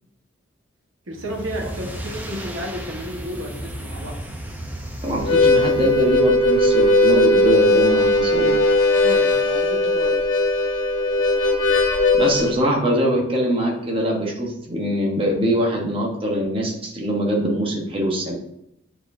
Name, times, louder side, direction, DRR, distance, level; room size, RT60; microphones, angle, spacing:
sound 1, 1.1-6.4, right 1 dB, 10° right, 0.6 m, -34 dB
voice 1, 1.1-4.2 9.0-10.2, equal, 85° right, 2 dB, 1.2 m, -32 dB
voice 2, 5.0-8.5 12.1-18.3, equal, 25° right, -1 dB, 1.1 m, -22 dB
Harmonica, 5.1-12.5, left 2 dB, 75° left, 1.2 m, -18 dB
9.8 x 4.3 x 2.7 m, 0.80 s
head